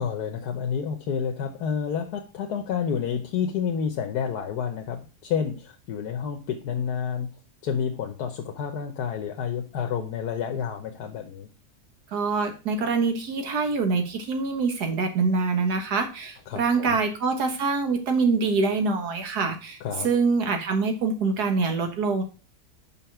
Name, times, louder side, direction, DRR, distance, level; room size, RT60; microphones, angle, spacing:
voice 1, 0.0-7.3 7.6-11.5 16.5-17.0 19.8-20.1, left 7 dB, 85° left, 4 dB, 1.4 m, -29 dB
voice 2, 12.1-19.8 20.0-22.2, right 4 dB, 85° right, 6 dB, 1.9 m, -25 dB
5.7 x 5.5 x 5.7 m, 0.34 s
omnidirectional pair, 1.7 m